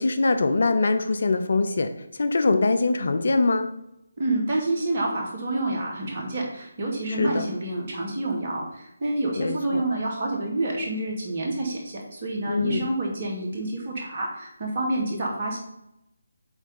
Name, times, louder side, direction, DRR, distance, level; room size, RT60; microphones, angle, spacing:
voice 1, 0.0-1.9 2.2-3.7 7.2-7.5 9.4-9.8 12.5-12.9, left 3 dB, 60° left, 9 dB, 0.7 m, -23 dB
voice 2, 4.2-15.6, right 2 dB, 40° right, -2 dB, 2.5 m, -28 dB
8.1 x 3.6 x 5.6 m, 0.84 s
figure-of-eight pair, 155°, 0 cm